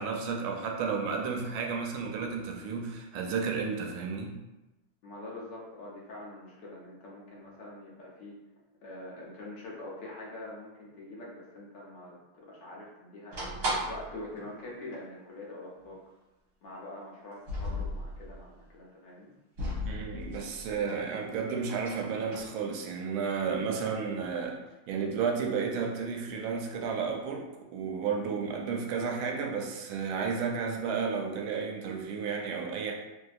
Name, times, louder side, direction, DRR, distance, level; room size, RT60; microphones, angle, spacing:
voice 1, 0.0-4.4 19.9-24.6 24.9-32.9, right 5 dB, 85° right, 1 dB, 1.4 m, -32 dB
voice 2, 5.0-8.3 8.8-12.2 12.5-13.3 13.9-16.0 16.6-19.3, left 2 dB, 70° left, -4 dB, 1.3 m, -44 dB
sound 1, 13.3-14.2 14.6-14.7 14.9-15.0 15.8-16.0 17.3-18.4 19.6-21.0 21.3-22.5, equal, 60° right, 1.4 m, -36 dB
3.3 x 2.6 x 2.4 m, 1.0 s
omnidirectional pair, 2.2 m